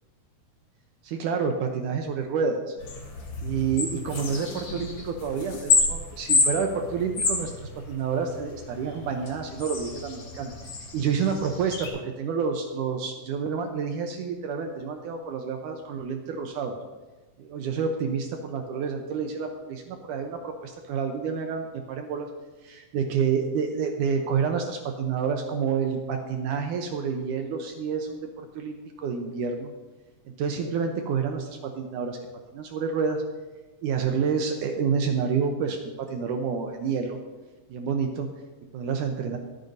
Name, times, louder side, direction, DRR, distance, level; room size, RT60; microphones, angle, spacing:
voice 1, 1.0-2.8 3.4-10.5 10.9-16.8 17.4-22.3 22.6-29.7 30.4-32.2 32.5-33.2 33.8-35.8 36.1-37.2 37.7-38.3 38.7-39.4, right 6 dB, 75° right, 4 dB, 2.2 m, -29 dB
sound 1, 2.8-11.9, left 3 dB, 40° left, 2.1 m, -29 dB
23.0 x 9.3 x 2.7 m, 1.2 s
omnidirectional pair, 3.9 m